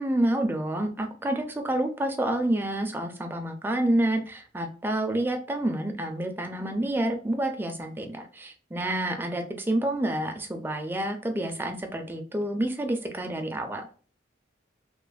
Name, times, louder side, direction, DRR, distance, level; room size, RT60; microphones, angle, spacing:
voice 1, 0.0-13.9, right 1 dB, 10° right, 5 dB, 0.3 m, -28 dB
3.1 x 2.0 x 2.3 m, 0.40 s
head